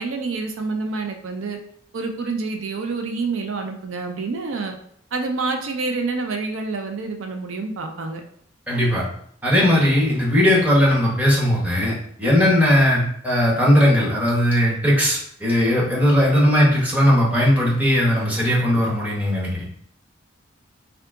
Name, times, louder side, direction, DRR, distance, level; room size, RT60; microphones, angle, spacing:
voice 1, 0.0-1.6 1.9-4.7 5.1-8.2, right 3 dB, 85° right, 5 dB, 0.5 m, -27 dB
voice 2, 8.7-9.0 9.4-19.6, equal, 10° right, -5 dB, 0.9 m, -18 dB
3.7 x 2.3 x 3.5 m, 0.64 s
head